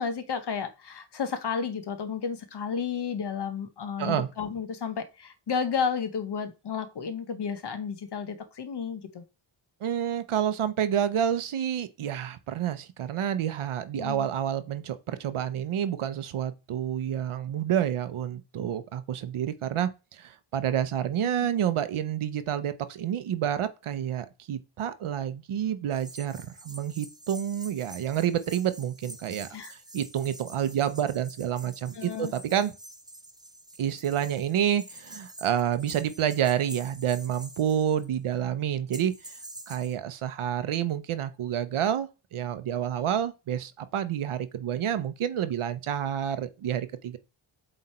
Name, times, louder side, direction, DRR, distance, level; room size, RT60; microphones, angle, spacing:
voice 1, 0.0-9.2 14.0-14.3 21.4-21.5 29.5-29.7 31.9-32.3, left 6 dB, 55° left, 1.0 m, -32 dB
voice 2, 4.0-4.3 9.8-29.5 29.9-32.7 33.8-39.1 39.7-47.2, right 10 dB, 85° right, 0.8 m, -29 dB
sound 1, 25.9-38.2 38.9-40.0, right 1 dB, 10° right, 0.8 m, -47 dB
8.0 x 3.3 x 4.3 m
wide cardioid pair, 105°, 49 cm